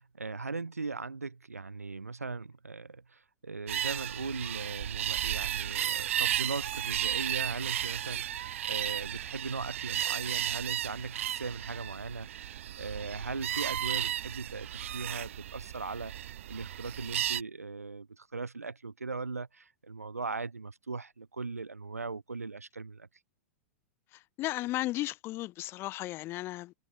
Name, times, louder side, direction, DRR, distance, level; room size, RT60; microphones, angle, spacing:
voice 1, 0.0-16.1 16.5-23.1, right 4 dB, 80° right, 1.5 m, -39 dB
sound 1, 3.7-17.4, right 11 dB, 60° right, 0.5 m, -34 dB
voice 2, 24.1-26.7, left 17 dB, 30° left, 0.4 m, -35 dB
figure-of-eight pair, 100°, 8 cm